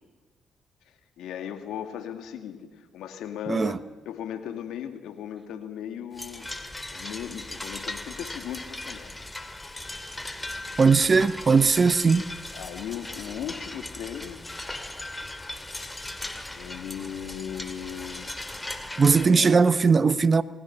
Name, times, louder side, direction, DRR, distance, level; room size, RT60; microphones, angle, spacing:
voice 1, 1.2-3.8 4.1-6.5 6.9-9.1 12.5-14.4 16.5-18.3 19.2-19.5, left 9 dB, 80° left, 2.4 m, -37 dB
voice 2, 3.5-3.8 10.8-12.3 19.0-20.4, right 5 dB, 40° right, 1.1 m, -19 dB
sound 1, 6.1-19.3, left 1 dB, 15° left, 2.4 m, -38 dB
28.5 x 20.0 x 6.0 m
supercardioid pair, 65°, 0 cm